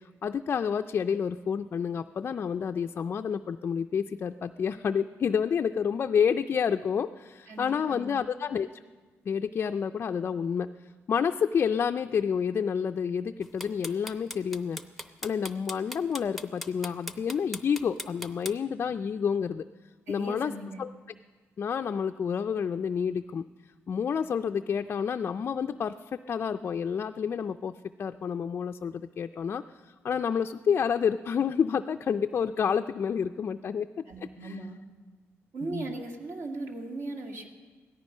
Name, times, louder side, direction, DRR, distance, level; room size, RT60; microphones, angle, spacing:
voice 1, 0.0-8.7 9.3-10.7 11.1-14.8 15.2-19.6 20.1-20.5 20.8-20.9 21.6-23.4 23.9-27.7 28.0-33.9 34.4-34.6 35.7-35.9, left 7 dB, 45° left, 6 dB, 0.4 m, -29 dB
voice 2, 7.5-8.1 20.1-20.8 34.1-34.8 35.5-37.5, right 2 dB, 60° right, 1 dB, 2.0 m, -38 dB
sound 1, 13.4-18.5, left 1 dB, ahead, 0.7 m, -38 dB
17.0 x 13.5 x 5.5 m, 1.4 s
cardioid pair, 115°, 5 cm